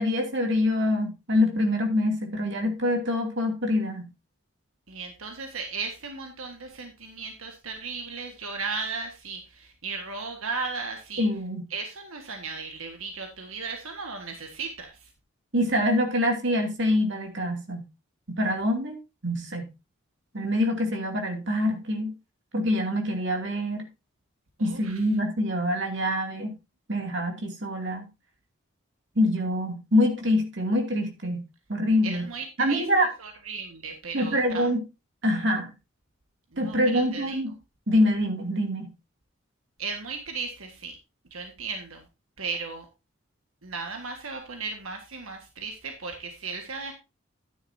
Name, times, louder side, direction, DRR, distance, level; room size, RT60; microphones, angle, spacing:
voice 1, 0.0-4.1 11.2-11.6 15.5-17.8 18.3-19.0 19.2-19.7 20.3-22.1 22.5-23.9 24.6-26.5 26.9-28.0 29.2-31.4 31.7-32.3 32.6-33.1 34.1-34.8 35.2-35.7 36.6-37.5 37.9-38.9, left 1 dB, 55° right, 3 dB, 2.7 m, -25 dB
voice 2, 4.9-11.2 11.7-15.1 24.6-25.0 32.0-32.9 33.2-34.7 36.5-37.4 39.8-41.0 41.3-42.0 42.4-42.8 43.6-46.9, right 4 dB, 80° right, 4 dB, 1.7 m, -36 dB
11.0 x 9.8 x 2.7 m, 0.27 s
head